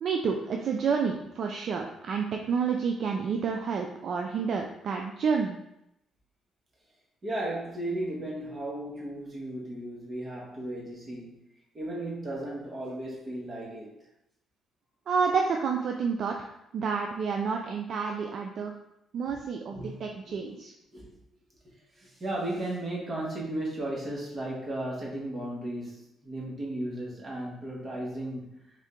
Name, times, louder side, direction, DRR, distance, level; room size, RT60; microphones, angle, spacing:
voice 1, 0.0-5.6 15.1-18.7 19.1-19.8 20.0-20.7, right 5 dB, 60° right, 2 dB, 0.3 m, -29 dB
voice 2, 7.2-11.4 11.7-14.0 19.7-20.5 20.9-21.2 21.6-28.6, right 1 dB, 40° right, -3 dB, 1.4 m, -35 dB
3.6 x 2.7 x 3.6 m, 0.82 s
cardioid pair, 90°, 0 cm